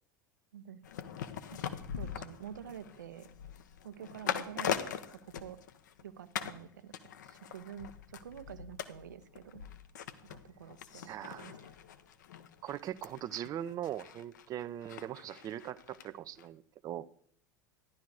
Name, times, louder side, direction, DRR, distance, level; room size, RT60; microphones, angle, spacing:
sound 1, 0.8-6.0 6.3-6.6 6.9-16.1 16.4-16.5, left 9 dB, 65° left, 1.0 m, -42 dB
voice 1, 1.5-3.3 3.8-5.6 6.0-6.9 7.2-9.6 10.3-11.5, right 9 dB, 70° right, 12 dB, 0.9 m, -48 dB
voice 2, 11.1-11.6 12.6-17.1, right 11 dB, 35° right, 14 dB, 0.6 m, -40 dB
15.0 x 11.5 x 4.7 m, 0.64 s
figure-of-eight pair, 75°, 10 cm